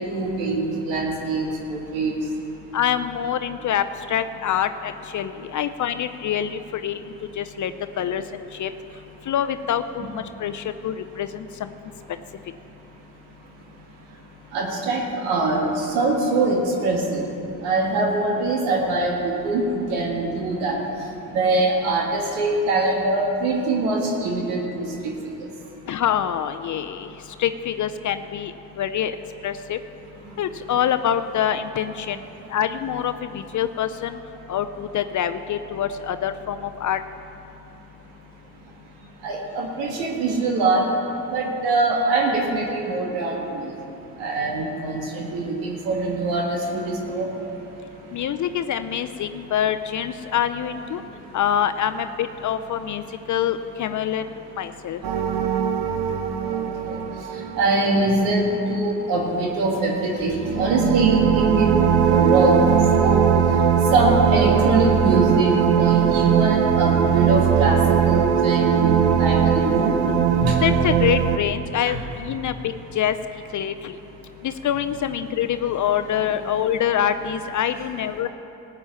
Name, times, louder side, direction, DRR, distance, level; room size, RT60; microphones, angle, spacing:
voice 1, 0.1-2.2 14.5-15.6 15.9-17.2 17.6-20.8 21.3-24.9 39.2-40.8 41.3-43.7 44.2-47.3 56.5-56.6 56.9-57.0 57.6-61.7 62.1-62.6 63.0-63.2 63.9-65.5 65.8-67.8 68.0-68.9 69.2-69.9 70.4-70.6 71.9-72.0 77.3-77.4, right 2 dB, 85° right, -1 dB, 1.8 m, -23 dB
voice 2, 2.7-7.0 7.4-7.7 8.0-8.2 8.5-8.7 9.3-11.7 25.9-27.1 27.4-29.2 29.4-29.8 30.4-32.2 32.5-34.2 34.5-37.0 48.1-51.0 51.3-54.3 54.6-55.0 70.6-73.1 73.5-73.9 74.4-78.3, left 9 dB, 45° left, 10 dB, 0.6 m, -25 dB
sound 1, 55.0-58.5 60.2-71.4, right 8 dB, 65° right, 0.9 m, -20 dB
15.0 x 8.8 x 5.7 m, 3.0 s
supercardioid pair, 70°, 43 cm